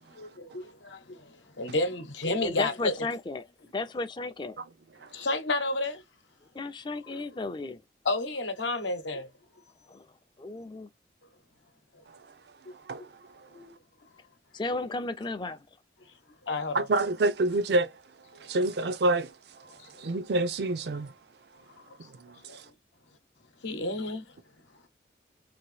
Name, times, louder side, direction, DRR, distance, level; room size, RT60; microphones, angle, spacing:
voice 1, 0.1-3.0 5.1-6.0 7.1-7.2 8.0-9.3 12.7-12.8 13.5-13.7 16.4-16.9 18.3-18.5 19.9-20.1 21.8-22.1 22.4-22.7 23.6-24.3, left 2 dB, 80° left, 0.9 m, -31 dB
voice 2, 2.4-3.5 3.7-4.6 6.5-7.8 9.9-10.1 10.4-10.9 14.5-15.7, left 3 dB, 25° left, 0.4 m, -34 dB
voice 3, 16.7-17.9 18.4-19.3 20.0-21.1 22.4-22.6, right 2 dB, 60° right, 0.5 m, -27 dB
2.9 x 2.6 x 3.2 m
head